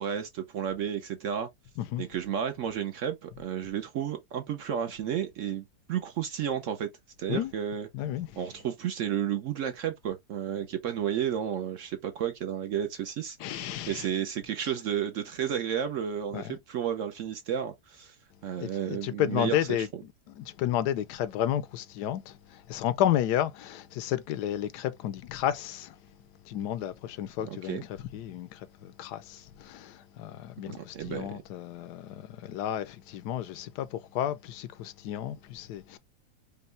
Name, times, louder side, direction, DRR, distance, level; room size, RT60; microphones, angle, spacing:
voice 1, 0.0-1.5 2.0-6.9 7.2-7.9 8.4-18.2 18.4-19.9 27.4-27.8 30.7-31.4, right 9 dB, 65° right, 0.8 m, -32 dB
voice 2, 7.9-8.4 13.4-14.1 16.3-16.6 18.6-19.9 20.4-26.0 26.4-36.0, left 11 dB, 80° left, 1.2 m, -32 dB
5.3 x 2.2 x 3.1 m
omnidirectional pair, 1.7 m